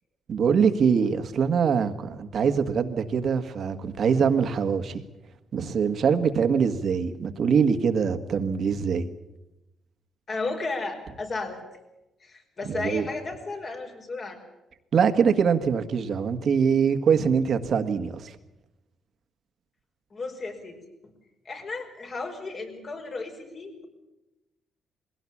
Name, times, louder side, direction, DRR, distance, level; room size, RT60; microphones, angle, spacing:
voice 1, 0.3-5.0 5.5-9.1 12.7-13.1 14.9-18.3, right 6 dB, 60° right, 8 dB, 1.7 m, -23 dB
voice 2, 10.3-11.6 12.2-14.4 20.1-20.8 21.5-23.8, left 3 dB, 45° left, 3 dB, 5.3 m, -34 dB
22.0 x 17.0 x 8.6 m, 0.97 s
cardioid pair, 90°, 0 cm